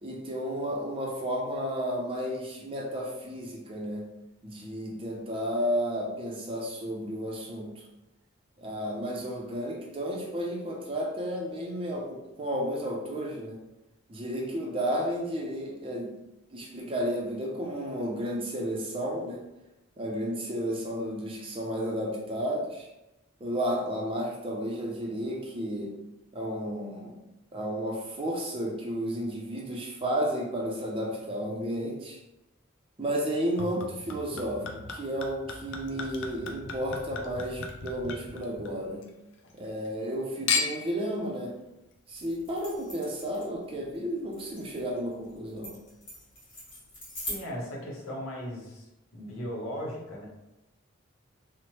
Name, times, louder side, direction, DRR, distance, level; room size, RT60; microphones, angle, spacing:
voice 1, 0.0-4.1 4.4-7.8 8.6-13.6 14.1-16.1 16.5-19.4 20.0-22.9 23.4-26.0 26.3-27.2 27.5-32.2 33.0-39.1 39.5-41.6 42.1-45.8, equal, 25° right, -1 dB, 0.4 m, -32 dB
Chink clink / Liquid, 33.6-39.1 39.4-40.1 40.5-41.0 41.7-41.8, left 5 dB, 60° left, 0.4 m, -35 dB
sound 1, 42.2-47.4, left 1 dB, 40° left, 1.2 m, -43 dB
voice 2, 47.1-48.9 49.1-50.3, equal, 85° left, -3 dB, 0.8 m, -37 dB
3.0 x 2.0 x 2.9 m, 0.94 s
head